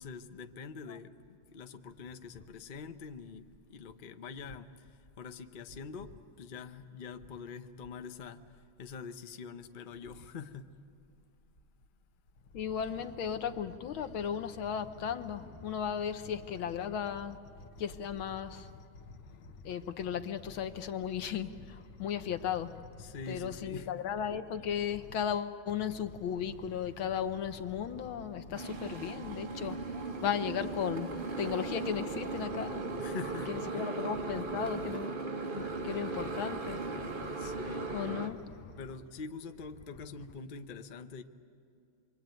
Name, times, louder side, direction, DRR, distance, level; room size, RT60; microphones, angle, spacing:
voice 1, 0.0-10.7 23.0-23.9 33.0-33.9 37.4-37.9 38.8-41.2, left 5 dB, 40° left, 0.7 m, -45 dB
voice 2, 12.5-17.4 17.8-18.8 19.3-33.1 33.5-35.2 35.5-37.6 37.9-38.8, left 8 dB, 80° left, 1.9 m, -36 dB
Motorcycle, 28.6-38.3, right 3 dB, 30° right, 1.2 m, -37 dB
27.5 x 23.5 x 9.2 m
omnidirectional pair, 2.2 m